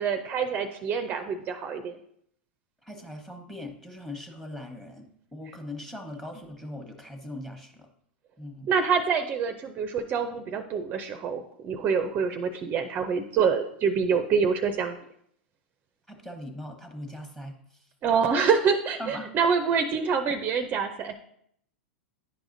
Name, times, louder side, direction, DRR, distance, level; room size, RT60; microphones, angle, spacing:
voice 1, 0.0-2.0 8.7-15.0 18.0-21.1, right 6 dB, 30° right, 8 dB, 0.5 m, -26 dB
voice 2, 2.8-7.9 8.4-8.7 16.1-17.6 19.0-19.3, left 1 dB, 5° left, 4 dB, 1.1 m, -40 dB
10.0 x 4.8 x 2.6 m, 0.69 s
hypercardioid pair, 110°, 6 cm